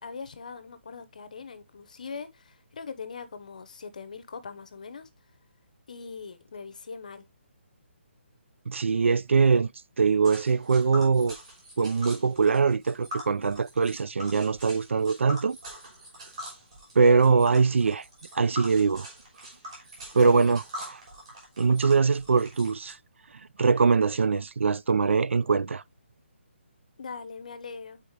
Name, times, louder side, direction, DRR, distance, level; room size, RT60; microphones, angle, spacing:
voice 1, 0.0-5.1 5.9-7.3 20.3-20.6 27.0-28.0, left 5 dB, 40° left, 0.7 m, -41 dB
voice 2, 8.7-9.7 10.0-11.4 11.8-15.6 17.0-18.0 18.3-19.1 20.1-20.6 21.6-23.0 23.6-25.8, right 5 dB, 90° right, 0.4 m, -22 dB
Tick, 10.2-22.9, equal, 30° right, 3.2 m, -43 dB
7.9 x 4.3 x 3.1 m
hypercardioid pair, 180°, 6 cm